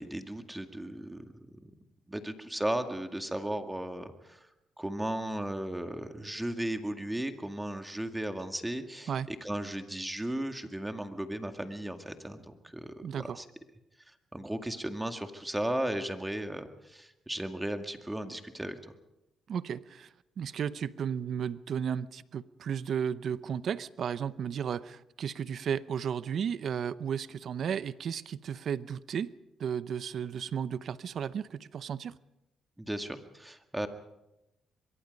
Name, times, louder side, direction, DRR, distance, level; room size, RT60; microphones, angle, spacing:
voice 1, 0.0-1.7 2.1-4.4 4.8-13.5 14.1-18.9 32.8-33.9, right 1 dB, 10° right, 7 dB, 2.0 m, -36 dB
voice 2, 13.0-13.4 19.5-20.1 20.4-29.3 29.6-32.1, right 8 dB, 60° right, 16 dB, 0.7 m, -34 dB
24.0 x 23.0 x 5.4 m, 0.94 s
cardioid pair, 90°, 0 cm